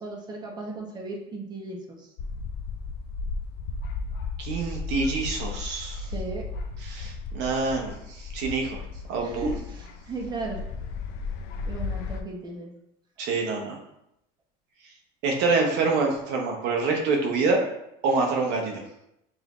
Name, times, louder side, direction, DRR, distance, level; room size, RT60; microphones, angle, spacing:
voice 1, 0.0-2.1 6.0-6.4 9.2-10.6 11.7-12.7, right 3 dB, 20° right, -1 dB, 1.0 m, -35 dB
sound 1, 2.2-12.2, left 4 dB, 65° left, 0.5 m, -35 dB
voice 2, 4.4-6.1 6.8-8.8 9.1-9.5 13.2-13.8 15.2-17.6 18.0-18.8, right 3 dB, 70° right, 1 dB, 0.8 m, -26 dB
5.0 x 2.7 x 3.0 m, 0.82 s
supercardioid pair, 105°, 19 cm